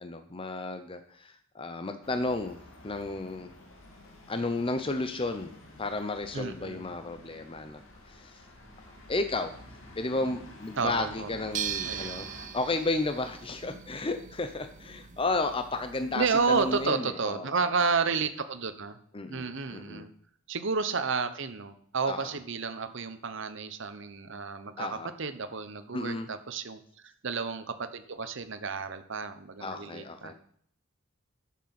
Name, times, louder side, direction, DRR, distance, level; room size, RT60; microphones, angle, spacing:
voice 1, 0.0-2.6 2.8-3.5 4.3-5.5 5.8-7.8 8.1-8.4 9.1-9.5 10.0-12.3 12.5-17.5 19.1-20.1 22.1-22.3 24.8-25.1 25.9-26.3 29.6-30.3, left 2 dB, 25° left, 8 dB, 0.7 m, -33 dB
sound 1, 2.0-12.5, left 1 dB, 75° left, 2.2 m, -50 dB
voice 2, 6.3-6.8 10.8-11.6 11.8-12.2 16.1-19.0 19.3-20.1 20.5-30.3, right 4 dB, 60° right, 10 dB, 0.9 m, -31 dB
sound 2, 11.5-16.9, right 9 dB, 40° right, 0.6 m, -40 dB
11.0 x 7.5 x 6.0 m, 0.63 s
head